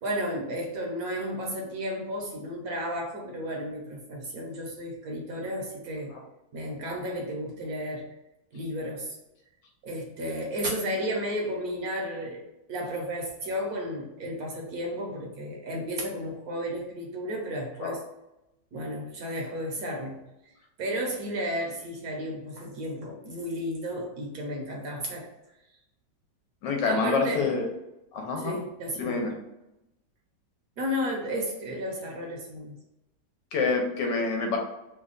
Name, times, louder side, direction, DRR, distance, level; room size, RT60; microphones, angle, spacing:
voice 1, 0.0-6.2 6.5-8.1 8.5-9.2 9.8-18.0 18.7-20.3 20.8-25.3 26.9-27.8 28.4-29.3 30.8-32.7, equal, 65° right, -1 dB, 1.1 m, -33 dB
voice 2, 26.6-27.7 28.1-28.6 28.9-29.3 33.5-34.6, left 4 dB, 80° left, 2 dB, 1.4 m, -27 dB
3.3 x 2.2 x 3.8 m, 0.91 s
omnidirectional pair, 1.9 m